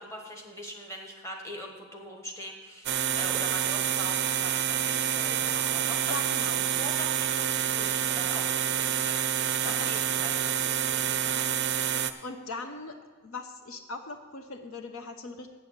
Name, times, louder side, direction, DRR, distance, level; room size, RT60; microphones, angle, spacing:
voice 1, 0.0-6.2 6.8-11.8, equal, 15° left, 1 dB, 1.2 m, -42 dB
sound 1, 2.9-12.1, right 9 dB, 50° right, 0.4 m, -28 dB
voice 2, 6.1-6.9 9.6-9.9 12.2-13.0 13.2-15.5, left 3 dB, 65° left, 7 dB, 0.6 m, -39 dB
7.4 x 6.9 x 7.9 m, 1.4 s
head